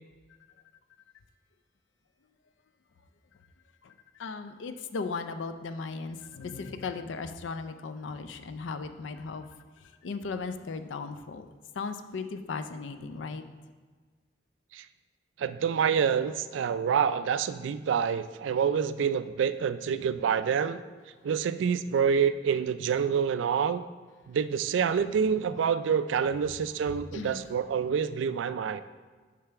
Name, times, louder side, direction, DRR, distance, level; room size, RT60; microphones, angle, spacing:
voice 1, 4.2-9.5 10.0-11.5 11.7-13.5 25.4-25.5 27.1-27.5, left 4 dB, 90° left, 9 dB, 0.4 m, -37 dB
voice 2, 15.4-20.8 21.2-23.8 24.3-28.8, right 7 dB, 85° right, 13 dB, 0.3 m, -27 dB
6.7 x 3.3 x 5.9 m, 1.5 s
head